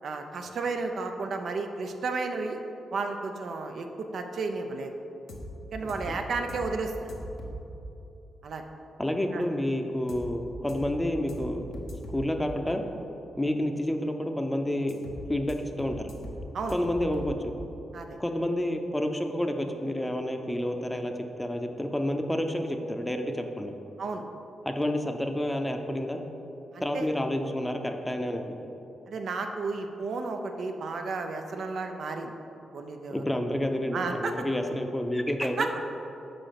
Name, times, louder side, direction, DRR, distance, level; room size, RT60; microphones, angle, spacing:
voice 1, 0.0-2.6 2.9-4.9 5.7-7.1 8.4-8.6 9.3-9.4 16.5-16.8 17.9-18.2 24.0-24.2 26.7-27.1 29.1-32.3 32.7-33.3 33.9-34.3 35.6-35.7, right 4 dB, 70° right, 5 dB, 0.6 m, -32 dB
sound 1, 5.3-5.5 5.9-6.1 6.5-6.7 7.1-7.6 10.1-10.3 10.7-10.9 11.3-11.5 11.7-12.2 14.9-15.2 15.5-15.6 15.8-16.4 16.7-17.3, equal, 80° left, 0.8 m, -40 dB
voice 2, 9.0-11.6 12.1-12.9 13.4-15.0 15.3-16.1 16.7-17.5 18.2-23.7 24.7-26.2 26.8-28.6 33.1-35.7, left 1 dB, 10° left, 5 dB, 0.7 m, -29 dB
5.1 x 4.8 x 5.8 m, 3.0 s
supercardioid pair, 55°, 0 cm